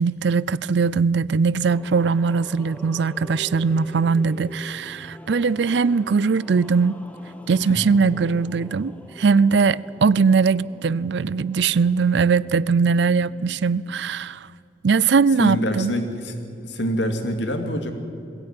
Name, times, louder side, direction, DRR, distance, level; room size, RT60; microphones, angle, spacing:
voice 1, 0.0-7.0 7.5-14.4 14.8-16.0, right 5 dB, 65° right, 0.4 m, -20 dB
sound 1, 1.7-14.2, left 1 dB, 5° left, 1.1 m, -45 dB
voice 2, 15.4-17.9, equal, 70° left, 2.4 m, -26 dB
21.5 x 16.5 x 9.7 m
head